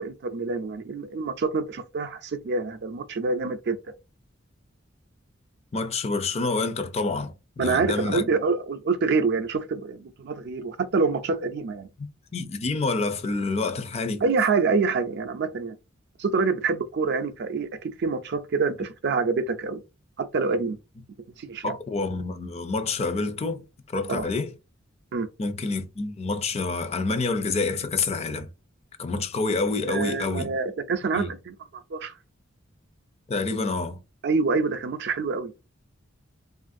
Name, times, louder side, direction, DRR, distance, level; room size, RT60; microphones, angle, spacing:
voice 1, 0.0-3.8 7.6-11.9 14.2-15.8 16.2-19.8 20.2-20.8 21.4-21.7 24.1-24.2 25.1-25.3 29.8-32.1 34.2-35.5, right 4 dB, 60° right, 0.4 m, -26 dB
voice 2, 5.7-8.3 12.0-12.1 12.3-14.2 21.6-24.5 25.4-28.5 29.0-30.6 31.1-31.3 33.3-34.0, left 3 dB, 30° left, 0.4 m, -28 dB
3.0 x 2.4 x 2.5 m
head